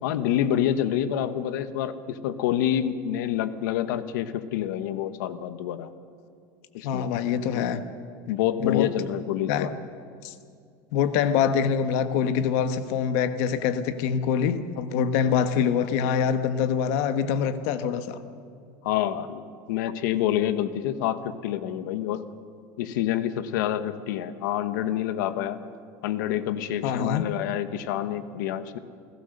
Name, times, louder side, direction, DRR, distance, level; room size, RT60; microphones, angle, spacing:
voice 1, 0.0-5.9 6.7-7.1 7.5-7.8 8.3-9.7 18.8-19.4 19.7-22.2 22.8-25.6 26.0-28.8, left 11 dB, 80° left, 12 dB, 1.3 m, -27 dB
voice 2, 6.8-7.8 8.6-8.9 9.5-9.7 10.2-10.3 10.9-18.2 26.8-27.2, left 7 dB, 55° left, 10 dB, 1.3 m, -25 dB
28.5 x 17.5 x 6.7 m, 2.2 s
cardioid pair, 175°, 10 cm